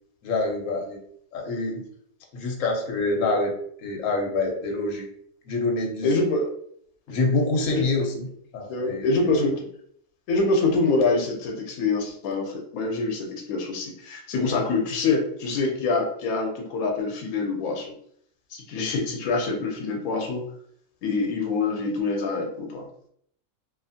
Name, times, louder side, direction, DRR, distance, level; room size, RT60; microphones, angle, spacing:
voice 1, 0.2-1.0 1.3-1.8 2.3-5.0 5.5-6.1 7.1-8.3 8.5-9.3 14.4-14.6, left 2 dB, 70° left, 1 dB, 1.0 m, -26 dB
voice 2, 6.0-6.5 7.7-7.8 8.7-9.7 10.3-17.9 18.5-20.5 21.0-22.9, left 3 dB, 85° left, 1 dB, 1.1 m, -25 dB
2.6 x 2.4 x 2.6 m, 0.67 s
omnidirectional pair, 1.5 m